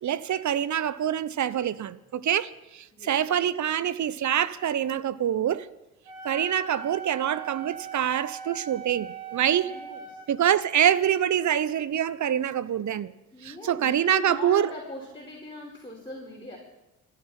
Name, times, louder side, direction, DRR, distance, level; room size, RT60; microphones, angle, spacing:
voice 1, 0.0-5.7 6.2-9.7 10.3-13.1 13.4-14.7, right 10 dB, 45° right, 0.9 m, -25 dB
Wind instrument woodwind instrument, 6.0-10.3, right 6 dB, 85° right, 4.3 m, -39 dB
voice 2, 9.6-10.2 13.3-16.6, left 2 dB, 10° left, 5.2 m, -41 dB
26.0 x 12.0 x 4.5 m
hypercardioid pair, 60°, 42 cm